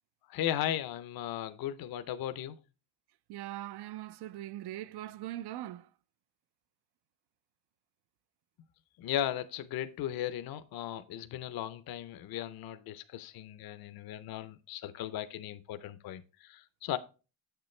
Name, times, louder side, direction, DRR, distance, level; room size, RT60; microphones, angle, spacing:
voice 1, 0.3-2.6 9.0-17.0, left 11 dB, 55° left, 0.6 m, -36 dB
voice 2, 3.3-5.8, right 14 dB, 65° right, 0.5 m, -41 dB
8.1 x 6.8 x 3.2 m
cardioid pair, 160°, 43 cm